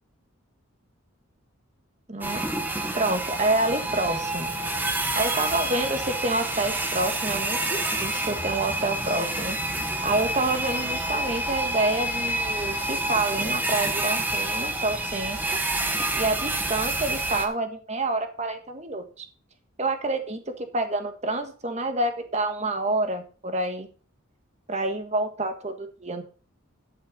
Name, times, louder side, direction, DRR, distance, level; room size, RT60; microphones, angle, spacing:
voice 1, 2.1-2.4 2.9-4.6 5.1-9.6 10.0-15.4 16.1-19.3 19.8-23.9 24.7-26.2, right 2 dB, 30° right, 7 dB, 1.5 m, -28 dB
sound 1, 2.2-17.5, right 1 dB, 10° right, 1.1 m, -28 dB
12.0 x 5.6 x 5.2 m, 0.39 s
head